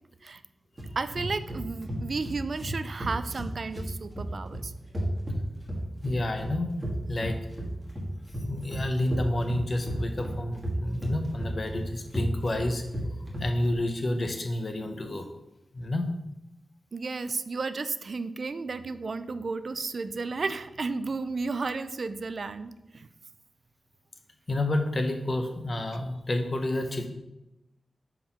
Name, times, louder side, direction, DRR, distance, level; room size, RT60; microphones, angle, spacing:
sound 1, 0.8-13.8, right 1 dB, 20° right, 1.5 m, -34 dB
voice 1, 1.0-4.7 16.9-23.1, right 4 dB, 50° right, 12 dB, 0.3 m, -33 dB
voice 2, 6.0-6.7 7.1-7.4 8.5-12.8 13.4-15.3 15.7-16.0 24.5-27.1, left 1 dB, 35° left, 6 dB, 0.8 m, -29 dB
5.6 x 4.6 x 5.5 m, 0.93 s
wide cardioid pair, 160°, 0 cm